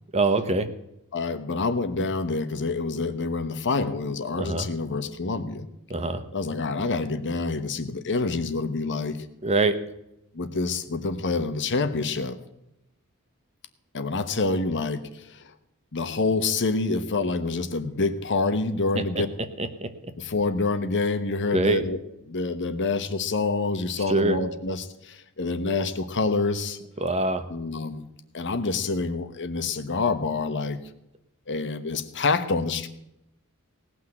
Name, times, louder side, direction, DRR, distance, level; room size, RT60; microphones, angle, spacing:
voice 1, 0.1-0.7 4.3-4.7 5.9-6.2 9.4-9.8 18.9-19.2 19.6-19.9 21.5-21.8 24.1-24.4 27.0-27.5, right 2 dB, 30° right, 10 dB, 1.0 m, -24 dB
voice 2, 1.1-5.6 6.3-9.2 10.3-12.4 13.9-15.5 15.9-19.3 20.2-22.0 22.3-26.8 27.5-28.0 28.3-30.8 31.5-32.9, left 3 dB, 55° left, 10 dB, 1.1 m, -27 dB
18.5 x 6.2 x 7.8 m, 0.86 s
head